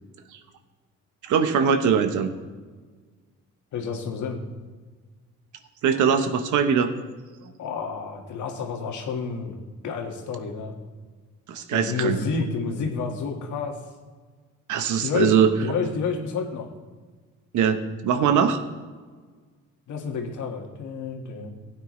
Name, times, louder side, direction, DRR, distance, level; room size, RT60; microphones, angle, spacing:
voice 1, 1.2-2.3 5.8-6.9 11.5-12.2 14.7-15.5 17.5-18.6, right 7 dB, 80° right, 8 dB, 1.1 m, -21 dB
voice 2, 3.7-4.4 7.6-9.6 9.8-10.8 11.7-13.8 15.0-15.3 15.6-16.7 19.9-21.5, left 5 dB, 75° left, 2 dB, 1.8 m, -29 dB
15.5 x 9.2 x 3.2 m, 1.4 s
cardioid pair, 90°, 30 cm